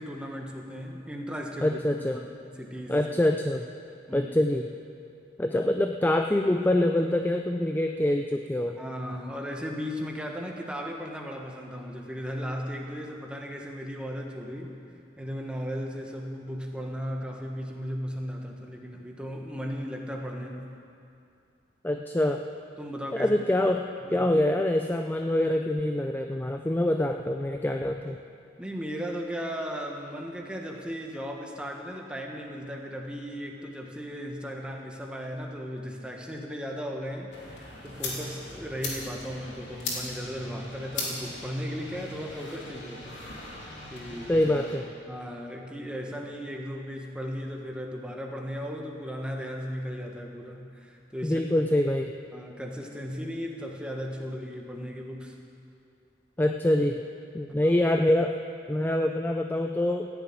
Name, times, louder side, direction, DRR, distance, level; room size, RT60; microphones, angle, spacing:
voice 1, 0.0-3.0 4.1-4.3 8.8-14.8 15.2-20.8 22.8-23.3 24.0-24.3 28.6-43.2 43.9-44.5 45.1-51.4 52.3-55.4 57.6-57.7, equal, 5° right, 1 dB, 1.3 m, -36 dB
voice 2, 1.6-2.2 2.9-3.7 4.1-4.7 5.4-8.8 21.8-22.4 23.2-23.8 24.1-28.2 44.3-44.9 51.2-52.1 56.4-57.0 57.3-58.3 58.7-60.1, left 1 dB, 10° left, 4 dB, 0.4 m, -25 dB
sound 1, 37.3-44.8, left 2 dB, 75° left, 3.1 m, -39 dB
15.0 x 7.1 x 9.2 m, 2.6 s
head